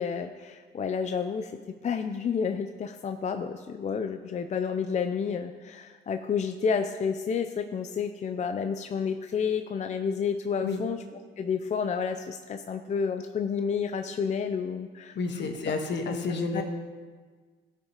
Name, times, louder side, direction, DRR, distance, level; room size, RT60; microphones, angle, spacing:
voice 1, 0.0-1.5 1.8-11.0 11.4-15.5 16.1-16.2 16.5-16.6, left 6 dB, 35° left, 7 dB, 0.4 m, -30 dB
voice 2, 15.1-16.6, left 4 dB, 65° left, 4 dB, 1.2 m, -30 dB
14.0 x 5.7 x 2.9 m, 1.5 s
cardioid pair, 90°, 20 cm